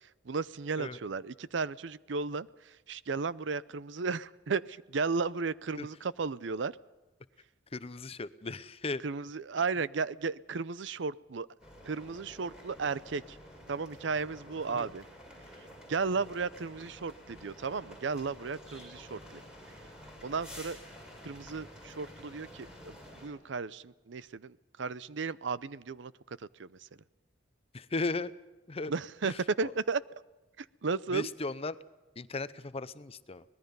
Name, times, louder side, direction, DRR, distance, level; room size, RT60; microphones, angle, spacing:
voice 1, 0.3-6.7 9.0-11.5 11.9-13.4 13.7-15.0 15.9-19.4 20.2-20.8 21.2-26.1 26.6-26.7 28.9-30.0 30.6-31.3, right 4 dB, 70° right, 18 dB, 0.6 m, -34 dB
voice 2, 7.7-9.0 14.7-14.9 27.7-28.3 28.7-28.9 29.2-29.7 31.1-31.8 32.2-33.4, left 3 dB, 35° left, 15 dB, 0.7 m, -36 dB
sound 1, 11.6-23.3, equal, 5° right, 6.5 m, -50 dB
24.5 x 19.5 x 5.4 m, 1.1 s
head